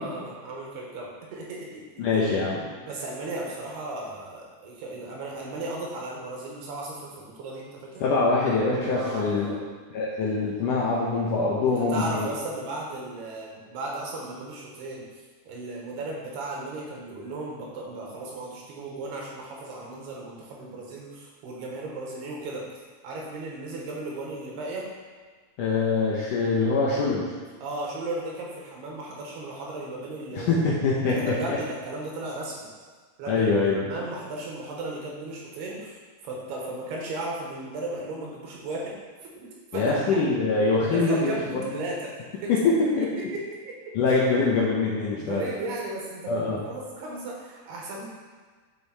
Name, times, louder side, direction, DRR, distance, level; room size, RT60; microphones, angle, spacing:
voice 1, 0.0-2.0 2.8-8.0 8.9-9.6 11.7-15.0 15.5-22.6 23.0-24.9 27.6-30.6 31.1-32.7 33.2-33.5 33.8-36.0 36.2-38.9 39.2-40.2 40.9-42.5 43.0-44.2 45.2-48.0, right 2 dB, 75° right, -3 dB, 3.6 m, -35 dB
voice 2, 2.0-2.6 8.0-9.5 9.9-12.3 25.6-27.3 30.3-31.6 33.3-33.9 39.7-41.6 42.6-43.1 44.0-45.4 46.3-46.6, left 3 dB, 70° left, -5 dB, 2.1 m, -24 dB
10.5 x 5.4 x 4.1 m, 1.5 s
omnidirectional pair, 4.8 m